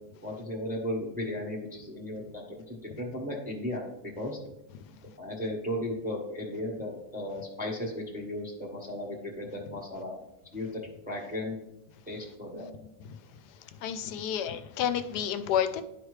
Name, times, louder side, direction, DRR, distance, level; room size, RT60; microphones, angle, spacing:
voice 1, 0.2-3.8 4.2-4.4 4.9-10.2 10.5-10.8 11.1-11.6 12.1-12.7 14.2-14.3, left 1 dB, 5° right, -2 dB, 0.9 m, -35 dB
voice 2, 13.8-15.8, left 9 dB, 80° left, 10 dB, 1.1 m, -30 dB
10.5 x 4.9 x 3.2 m, 0.86 s
omnidirectional pair, 1.7 m